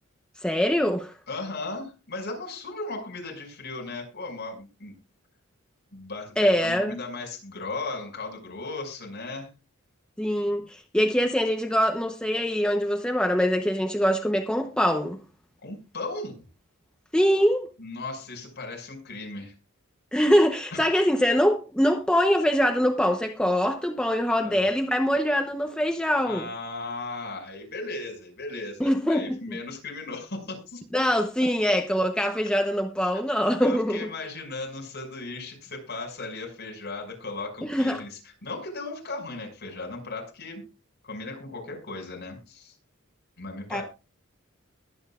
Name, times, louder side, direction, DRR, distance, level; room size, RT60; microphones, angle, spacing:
voice 1, 0.4-1.1 6.4-6.9 10.2-15.2 17.1-17.7 20.1-26.5 28.8-29.4 30.9-34.0 37.6-38.0 43.7-43.8, equal, 5° left, 0.8 m, -23 dB
voice 2, 1.3-4.9 5.9-9.5 15.6-16.4 17.8-19.5 20.7-20.9 24.4-24.6 26.3-30.8 33.6-40.7 41.0-42.7 43.4-43.8, left 3 dB, 50° left, 6.0 m, -36 dB
22.0 x 8.8 x 2.4 m
head